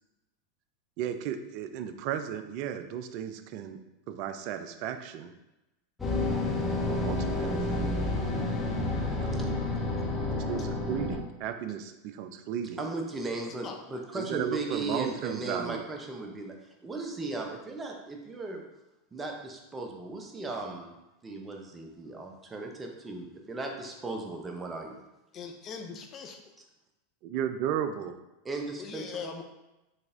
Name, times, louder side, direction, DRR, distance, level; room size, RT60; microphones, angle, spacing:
voice 1, 1.0-3.8 4.1-5.3 6.8-7.8 9.1-9.5 10.3-12.8 14.1-15.8 27.2-28.1, right 9 dB, 50° right, 8 dB, 0.3 m, -34 dB
sound 1, 6.0-11.2, left 2 dB, 15° left, 1.1 m, -30 dB
voice 2, 12.8-16.5 16.8-18.6 19.1-20.9 21.2-25.0 26.6-26.7 28.4-29.3, right 2 dB, 20° right, 2 dB, 0.6 m, -37 dB
voice 3, 25.3-26.4 28.8-29.4, left 5 dB, 35° left, 4 dB, 0.5 m, -40 dB
4.0 x 3.3 x 2.6 m, 0.97 s
hypercardioid pair, 90°, 0 cm